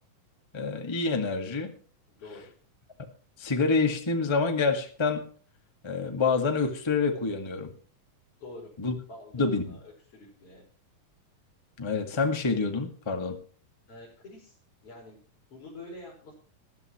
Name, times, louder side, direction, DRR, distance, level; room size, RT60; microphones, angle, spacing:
voice 1, 0.5-1.7 3.4-5.2 5.8-7.7 8.8-8.9 9.3-9.8 11.8-13.4, left 4 dB, 15° left, 3 dB, 0.9 m, -27 dB
voice 2, 2.1-2.5 8.4-8.7 9.0-10.6 13.9-14.6 14.8-15.2 15.5-16.3, left 2 dB, 40° left, -5 dB, 6.0 m, -46 dB
20.0 x 12.5 x 3.1 m, 0.42 s
omnidirectional pair, 4.0 m